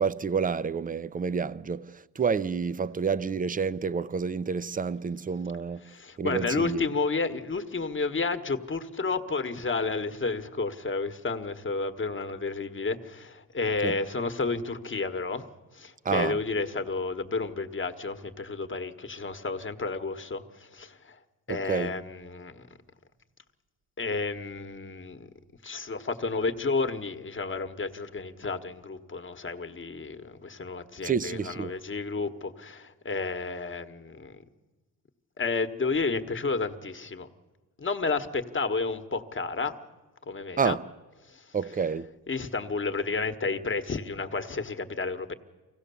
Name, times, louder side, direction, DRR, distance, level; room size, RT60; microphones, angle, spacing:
voice 1, 0.0-5.8 6.2-6.8 13.8-13.9 16.0-16.4 21.5-21.9 31.0-31.7 40.6-40.8 41.5-42.1, right 6 dB, 20° right, 0.5 m, -29 dB
voice 2, 5.8-15.5 15.7-21.2 21.5-22.6 24.0-25.3 25.6-34.4 35.4-37.3 37.8-39.8 40.3-40.8 41.3-41.4 42.3-45.3, left 4 dB, 30° left, 1.3 m, -31 dB
24.5 x 16.5 x 7.0 m
cardioid pair, 85°, 42 cm